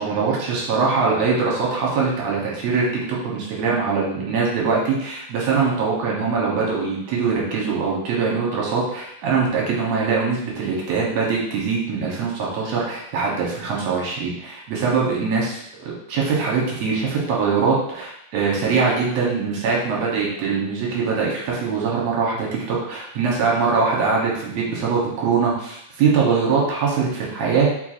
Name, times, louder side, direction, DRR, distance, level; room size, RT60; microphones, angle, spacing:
voice 1, 0.0-27.7, right 5 dB, 65° right, -4 dB, 1.9 m, -22 dB
4.5 x 4.4 x 2.5 m, 0.75 s
omnidirectional pair, 3.7 m